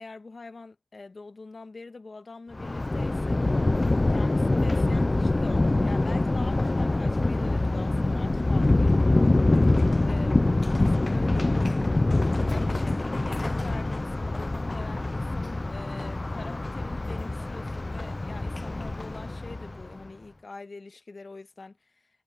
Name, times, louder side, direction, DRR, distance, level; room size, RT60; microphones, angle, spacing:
voice 1, 0.0-3.7 4.1-22.0, left 3 dB, 65° left, 1.7 m, -44 dB
Thunder, 2.5-19.9, left 2 dB, 40° left, 0.4 m, -25 dB
sound 1, 3.9-13.8, right 4 dB, 75° right, 2.2 m, -53 dB
cardioid pair, 45°, 0 cm